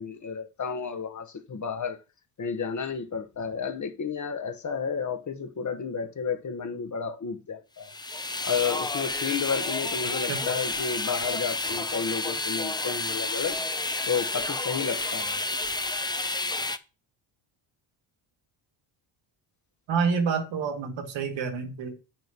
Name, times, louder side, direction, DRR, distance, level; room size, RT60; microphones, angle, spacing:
voice 1, 0.0-2.0 2.4-7.9 8.4-15.4, left 6 dB, 40° left, 1.3 m, -32 dB
sound 1, 7.8-16.8, left 2 dB, 10° left, 0.6 m, -30 dB
voice 2, 19.9-21.9, right 5 dB, 75° right, 2.4 m, -28 dB
9.3 x 8.9 x 3.0 m
cardioid pair, 110°, 46 cm